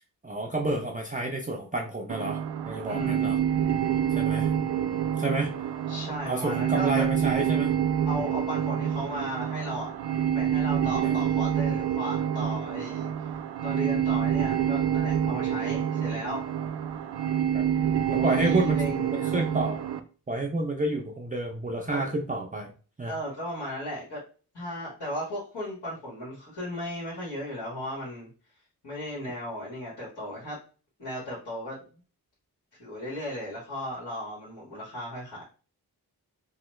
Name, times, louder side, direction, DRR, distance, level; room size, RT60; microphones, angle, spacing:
voice 1, 0.2-2.4 2.7-3.4 4.1-5.5 6.2-7.7 11.0-11.2 17.5-17.7 18.1-18.8 19.1-19.8 20.3-22.7 23.0-23.1, right 2 dB, 20° right, 0 dB, 0.4 m, -30 dB
sound 1, 2.1-20.0, right 9 dB, 85° right, 0.5 m, -27 dB
voice 2, 2.9-3.3 5.9-7.1 8.0-9.9 10.3-13.3 13.6-16.4 17.7-17.8 18.1-19.1 21.9-22.1 23.1-24.2 24.5-28.3 28.8-30.6 31.0-31.8 32.8-35.4, equal, 80° left, -7 dB, 1.6 m, -35 dB
3.0 x 2.2 x 3.1 m, 0.37 s
wide cardioid pair, 80°, 40 cm